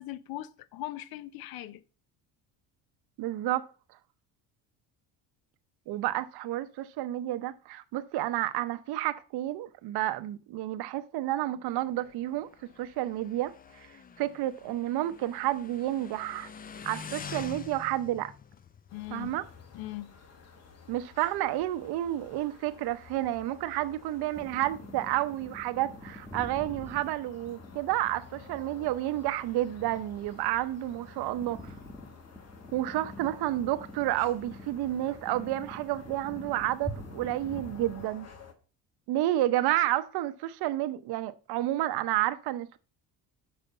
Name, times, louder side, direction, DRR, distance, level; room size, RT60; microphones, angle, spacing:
voice 1, 0.0-1.8 18.9-19.4 19.7-20.2, left 15 dB, 65° left, 0.7 m, -40 dB
voice 2, 3.2-3.7 5.9-12.5 12.8-13.9 14.2-16.5 16.8-18.3 19.1-19.4 20.9-31.6 32.7-38.3 39.1-42.8, right 14 dB, 75° right, 0.8 m, -30 dB
Motorcycle, 11.7-20.0, left 6 dB, 25° left, 0.4 m, -46 dB
sound 1, 18.9-38.5, left 5 dB, 40° left, 1.4 m, -53 dB
sound 2, 24.4-38.1, equal, 10° left, 1.2 m, -46 dB
6.9 x 4.9 x 5.5 m
cardioid pair, 110°, 39 cm